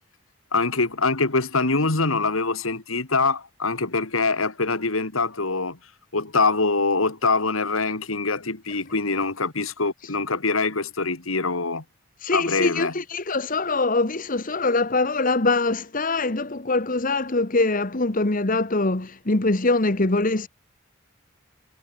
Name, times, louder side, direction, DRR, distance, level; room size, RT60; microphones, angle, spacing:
voice 1, 0.5-5.8 6.1-11.8 12.3-12.9, left 3 dB, 90° left, 2.6 m, -24 dB
voice 2, 12.2-20.5, left 3 dB, 40° left, 1.3 m, -23 dB
head